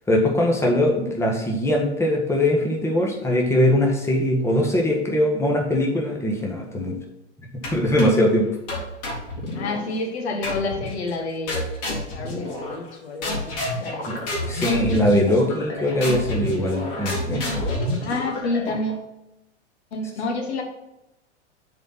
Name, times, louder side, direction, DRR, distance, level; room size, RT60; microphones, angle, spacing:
voice 1, 0.1-6.9 7.7-8.5 14.1-17.6, left 1 dB, 5° left, 0 dB, 1.4 m, -21 dB
sound 1, 7.6-8.3 8.7-9.8 10.4-11.0 11.5-12.9 13.2-18.9, left 1 dB, 45° left, 2.7 m, -29 dB
voice 2, 9.5-14.4 18.0-19.1 19.9-20.6, left 2 dB, 65° left, 3 dB, 1.4 m, -29 dB
7.0 x 4.3 x 5.8 m, 0.92 s
figure-of-eight pair, 95°, 35 cm